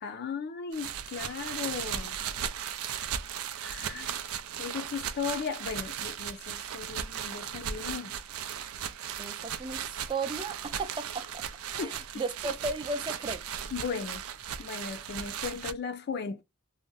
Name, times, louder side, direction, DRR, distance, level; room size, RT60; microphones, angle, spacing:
voice 1, 0.0-2.2 3.6-4.2 4.6-8.1 11.8-11.9 13.7-14.2 14.6-16.4, left 6 dB, 50° left, 0.4 m, -36 dB
sound 1, 0.7-15.7, right 9 dB, 85° right, 0.4 m, -37 dB
voice 2, 9.2-11.4 11.7-13.4, right 3 dB, 25° right, 0.4 m, -35 dB
2.5 x 2.0 x 3.7 m
head